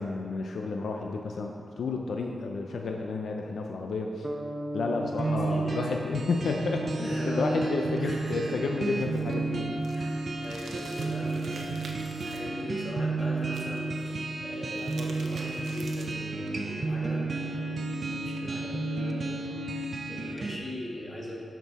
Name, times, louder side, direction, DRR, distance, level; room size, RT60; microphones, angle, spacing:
voice 1, 0.0-4.3 4.7-9.7, left 3 dB, 80° left, 2 dB, 0.6 m, -31 dB
sound 1, 4.2-8.2, equal, 20° right, 0.9 m, -39 dB
voice 2, 5.2-6.0 7.0-8.8 9.9-19.7 20.1-21.4, equal, 25° left, -4 dB, 2.0 m, -40 dB
sound 2, 5.2-20.6, right 3 dB, 50° right, 0.7 m, -32 dB
sound 3, 9.0-12.4 13.4-14.0 14.5-16.3, right 3 dB, 85° right, 1.0 m, -47 dB
12.0 x 6.0 x 4.2 m, 2.4 s
wide cardioid pair, 105°, 0 cm